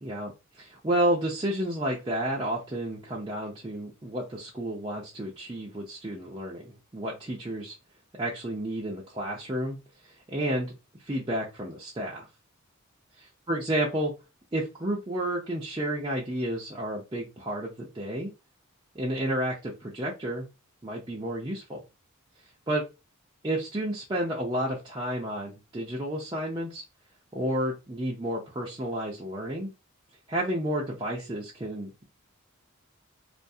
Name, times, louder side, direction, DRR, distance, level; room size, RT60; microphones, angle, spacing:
voice 1, 0.0-7.8 8.2-9.8 10.3-10.7 11.1-12.3 13.5-14.1 14.5-18.3 18.9-20.5 20.8-21.8 22.7-22.8 23.4-26.8 27.3-29.7 30.3-32.0, right 1 dB, 20° right, -5 dB, 0.5 m, -31 dB
2.5 x 2.3 x 2.6 m, 0.26 s
head